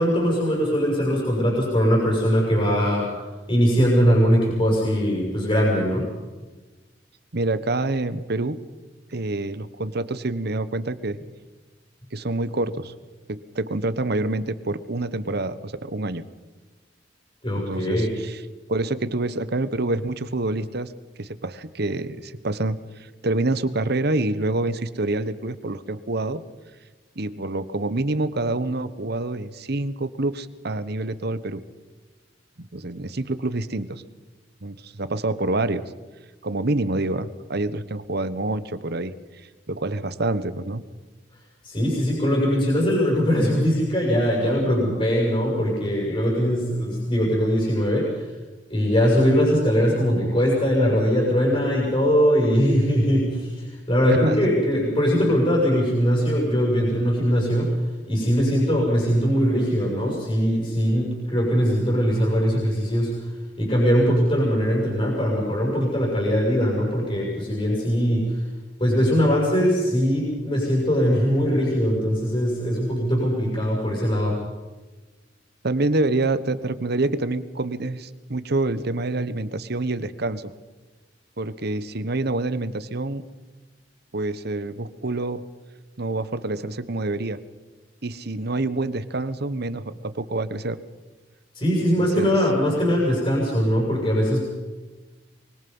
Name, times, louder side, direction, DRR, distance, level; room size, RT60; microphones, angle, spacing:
voice 1, 0.0-3.1 3.5-6.1 17.4-18.1 41.6-48.3 48.7-57.8 58.1-63.2 63.6-68.4 68.8-74.4 91.5-94.4, equal, 30° left, -4 dB, 6.8 m, -21 dB
voice 2, 7.3-8.6 9.1-11.2 12.1-12.9 13.3-16.2 17.6-18.4 18.7-20.9 21.2-26.4 27.2-31.6 32.6-34.0 34.6-35.8 36.4-40.8 54.1-54.5 75.6-80.5 81.4-83.2 84.1-85.4 86.0-87.4 88.0-90.8 91.8-92.3, right 2 dB, 60° right, 14 dB, 1.2 m, -27 dB
24.5 x 24.0 x 5.6 m, 1.3 s
head